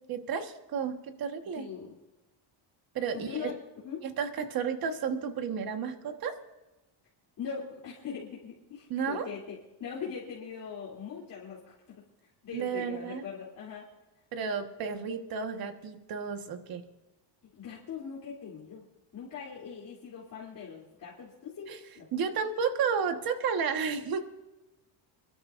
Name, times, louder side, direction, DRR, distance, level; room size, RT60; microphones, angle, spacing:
voice 1, 0.1-1.7 2.9-3.5 4.0-6.3 8.9-9.3 12.5-13.2 14.3-16.8 21.7-21.8 22.1-24.2, right 6 dB, 45° right, 6 dB, 1.5 m, -32 dB
voice 2, 1.5-1.9 3.1-4.0 7.4-13.9 17.5-18.9 19.1-22.1, left 6 dB, 40° left, -6 dB, 3.2 m, -41 dB
27.5 x 12.5 x 2.6 m, 1.1 s
cardioid pair, 165°, 49 cm